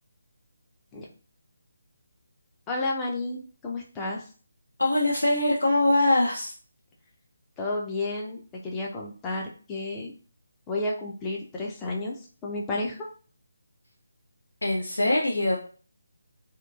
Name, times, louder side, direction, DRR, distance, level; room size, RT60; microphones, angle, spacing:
voice 1, 2.7-4.2 7.6-10.1 10.7-13.1, left 2 dB, 15° left, -2 dB, 0.5 m, -32 dB
voice 2, 4.8-6.5 14.6-15.6, left 1 dB, 85° left, -2 dB, 0.5 m, -23 dB
2.8 x 2.2 x 2.3 m, 0.40 s
figure-of-eight pair, 155°, 0 cm